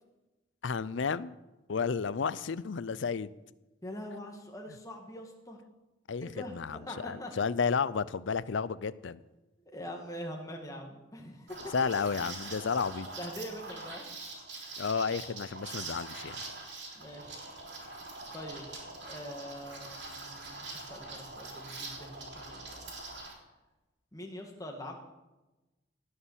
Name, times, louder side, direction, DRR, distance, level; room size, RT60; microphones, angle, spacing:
voice 1, 0.6-1.3 1.7-3.3 6.1-9.2 11.7-13.1 14.8-16.4, left 5 dB, 70° left, 18 dB, 0.5 m, -32 dB
voice 2, 3.8-5.6 6.2-7.3 9.6-11.6 13.2-14.0 16.9-17.5 18.3-18.7 19.0-22.8 24.1-24.9, equal, 15° left, 2 dB, 1.8 m, -43 dB
Liquid, 11.5-23.3, right 3 dB, 60° right, 3.7 m, -43 dB
18.0 x 6.6 x 7.3 m, 1.1 s
head